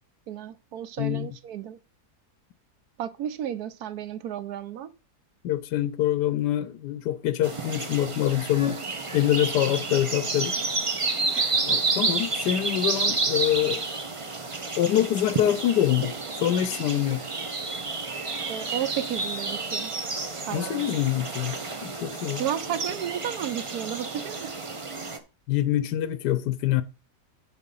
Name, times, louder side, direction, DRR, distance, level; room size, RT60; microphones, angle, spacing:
voice 1, 0.3-1.8 3.0-4.9 11.3-11.6 12.4-12.5 18.5-19.9 20.5-20.9 22.3-24.5, right 10 dB, 70° right, 1.2 m, -33 dB
voice 2, 1.0-1.3 5.4-8.8 9.1-10.6 11.7-13.8 14.8-16.1 16.4-17.2 20.5-21.6 21.8-22.4 25.5-26.8, left 12 dB, 80° left, 1.3 m, -25 dB
sound 1, 7.4-25.2, right 3 dB, 30° right, 0.6 m, -30 dB
10.5 x 4.1 x 5.5 m
omnidirectional pair, 1.8 m